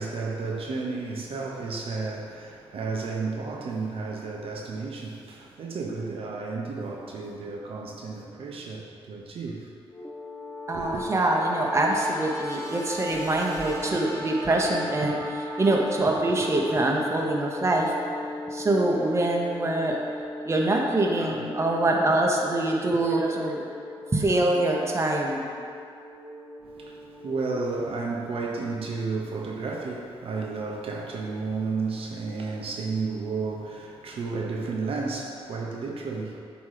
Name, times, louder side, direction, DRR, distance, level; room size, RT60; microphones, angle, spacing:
voice 1, 0.0-9.7 10.7-11.0 26.6-36.4, right 4 dB, 70° right, -1 dB, 0.9 m, -32 dB
sound 1, 9.9-27.6, left 1 dB, 35° left, 1.2 m, -37 dB
voice 2, 10.7-17.9 18.5-20.0 20.4-23.7 24.1-25.6, right 2 dB, 25° right, -1 dB, 0.9 m, -24 dB
8.4 x 3.1 x 4.9 m, 2.3 s
cardioid pair, 80°, 10 cm